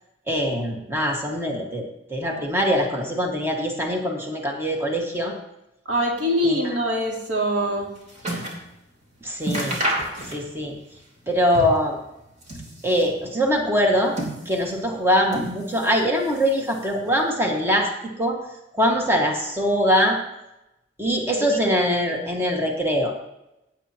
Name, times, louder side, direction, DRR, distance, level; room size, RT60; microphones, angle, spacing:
voice 1, 0.3-1.8 2.1-5.3 6.4-6.7 9.2-9.8 10.3-10.7 11.3-11.9 12.8-14.1 14.4-17.9 18.2-18.4 18.8-20.2 21.0-23.1, equal, 15° right, 0 dB, 1.6 m, -22 dB
voice 2, 5.9-7.9 21.4-21.8, equal, 85° right, -1 dB, 2.9 m, -24 dB
sound 1, 7.5-8.7 9.0-9.1 9.4-10.7 11.0-11.9 12.3-13.2 13.8-14.8 15.3-16.0 16.3-17.0 17.7-17.8, right 1 dB, 40° right, 3.0 m, -30 dB
16.0 x 9.2 x 2.9 m, 0.91 s
head